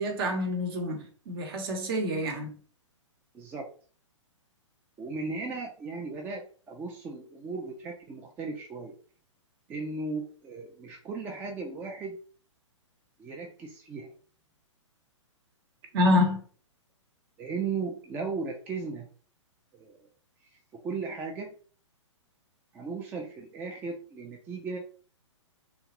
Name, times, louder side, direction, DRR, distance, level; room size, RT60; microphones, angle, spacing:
voice 1, 0.0-2.5 15.9-16.4, left 1 dB, 50° right, 0.9 m, -27 dB
voice 2, 3.3-3.7 5.0-8.9 9.7-12.2 13.2-14.1 17.4-19.1 19.7-20.0 20.7-21.5 22.7-24.8, right 4 dB, 15° right, 0.3 m, -36 dB
3.0 x 2.2 x 2.9 m
hypercardioid pair, 125°, 16 cm